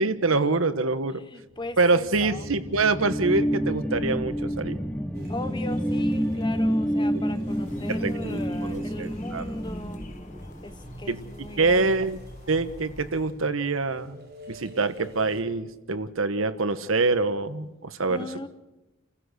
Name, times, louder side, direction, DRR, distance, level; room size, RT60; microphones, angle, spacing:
voice 1, 0.0-1.2 1.8-4.8 7.9-9.4 11.1-12.2 12.5-18.3, right 3 dB, 85° right, 11 dB, 1.2 m, -25 dB
voice 2, 1.2-2.5 5.3-10.1 10.6-11.9 18.1-18.5, left 2 dB, 20° left, 10 dB, 1.1 m, -39 dB
sound 1, 1.8-11.1, equal, 5° left, 0.8 m, -29 dB
sound 2, 5.1-15.4, equal, 50° right, 5.2 m, -47 dB
sound 3, 7.4-13.3, left 1 dB, 40° left, 1.5 m, -46 dB
29.5 x 15.5 x 6.5 m, 1.0 s
head